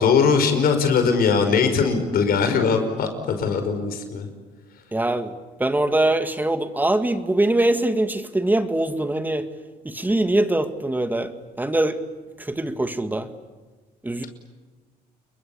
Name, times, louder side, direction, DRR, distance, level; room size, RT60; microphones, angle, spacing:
voice 1, 0.0-4.2, left 5 dB, 60° left, 7 dB, 5.4 m, -20 dB
voice 2, 4.9-9.5 9.8-12.0 12.4-13.3 14.0-14.3, right 1 dB, 10° right, 9 dB, 1.8 m, -23 dB
30.0 x 22.5 x 8.6 m, 1.3 s
cardioid pair, 110°, 17 cm